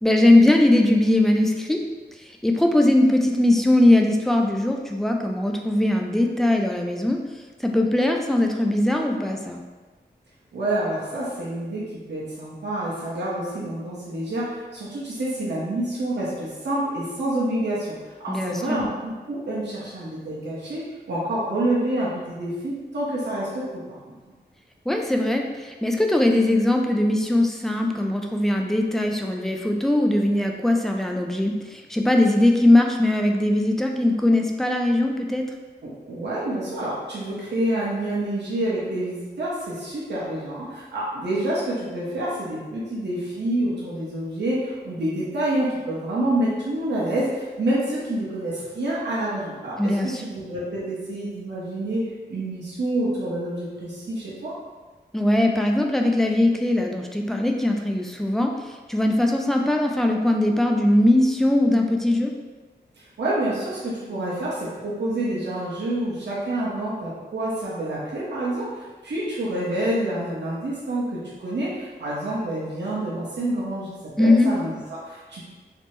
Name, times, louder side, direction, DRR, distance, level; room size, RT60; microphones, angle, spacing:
voice 1, 0.0-1.8 2.4-7.2 7.6-9.6 18.3-18.8 24.9-35.4 49.8-50.2 55.1-58.5 58.9-62.3 74.2-74.5, left 1 dB, ahead, 2 dB, 0.3 m, -20 dB
voice 2, 10.5-17.9 18.2-24.1 35.8-52.0 52.3-54.5 63.0-75.4, right 1 dB, 75° right, -8 dB, 0.8 m, -28 dB
3.4 x 2.0 x 3.0 m, 1.3 s
wide cardioid pair, 65°, 18 cm